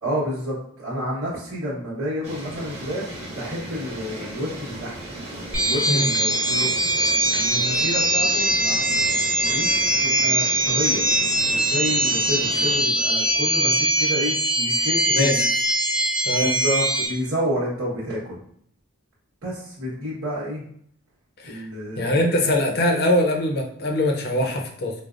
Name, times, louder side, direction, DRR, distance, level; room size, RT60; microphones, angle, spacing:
voice 1, 0.0-3.1 3.4-5.0 5.6-6.7 7.3-15.4 16.4-18.4 19.4-20.6 21.4-22.3, equal, 70° right, -8 dB, 1.2 m, -29 dB
sound 1, 2.2-12.8, right 1 dB, 30° right, 1.0 m, -36 dB
sound 2, 5.5-17.1, right 1 dB, 5° right, 1.0 m, -22 dB
voice 2, 15.1-15.5 16.2-16.5 21.4-21.6 22.0-24.9, left 1 dB, 45° left, 2 dB, 0.6 m, -22 dB
4.9 x 2.0 x 2.5 m, 0.64 s
head